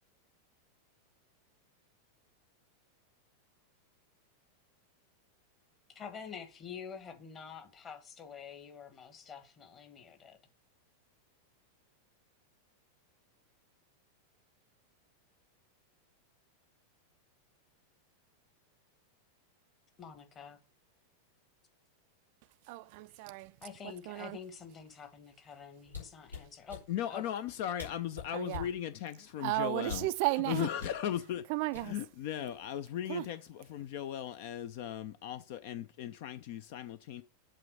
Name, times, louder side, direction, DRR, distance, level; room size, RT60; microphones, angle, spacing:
voice 1, 5.9-10.4 20.0-20.6 23.6-26.8 27.1-27.2, left 7 dB, 25° left, 1.4 m, -47 dB
voice 2, 22.7-23.5 24.1-24.4 28.3-28.7 29.4-30.7 31.5-31.9 33.1-33.2, right 20 dB, 45° right, 0.3 m, -33 dB
sound 1, 25.8-26.8 27.5-27.6 27.8-28.8 29.8-30.2 30.8-31.0 31.7-32.2 32.5-32.8, left 6 dB, 85° left, 3.0 m, -43 dB
voice 3, 26.9-31.5 31.8-37.2, left 11 dB, 50° left, 0.5 m, -37 dB
7.7 x 3.7 x 6.3 m
figure-of-eight pair, 90°, 0 cm